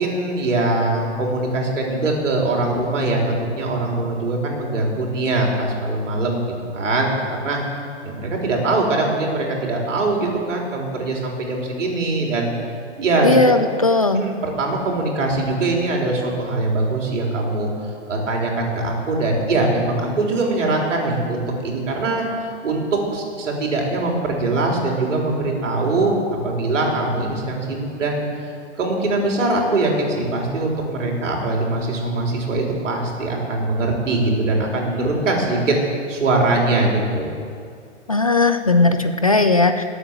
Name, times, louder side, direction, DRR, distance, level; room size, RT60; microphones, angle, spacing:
voice 1, 0.0-7.6 8.0-12.5 13.0-13.4 14.2-22.3 22.6-26.2 26.4-28.2 28.8-35.8 36.1-37.3, right 2 dB, 80° right, -1 dB, 4.1 m, -22 dB
voice 2, 13.2-14.2 38.1-39.8, left 3 dB, 30° left, 8 dB, 0.4 m, -17 dB
19.5 x 8.0 x 7.4 m, 2.3 s
hypercardioid pair, 175°, 37 cm